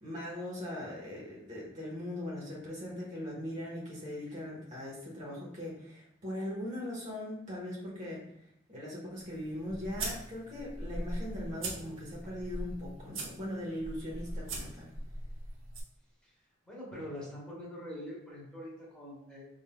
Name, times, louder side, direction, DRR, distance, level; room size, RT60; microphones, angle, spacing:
voice 1, 0.0-8.2 8.7-14.9, left 1 dB, 40° right, -5 dB, 1.2 m, -40 dB
sound 1, 9.2-15.8, right 1 dB, 85° right, 1.0 m, -41 dB
voice 2, 16.6-19.4, equal, 5° left, -6 dB, 1.4 m, -44 dB
6.1 x 3.8 x 2.2 m, 0.76 s
head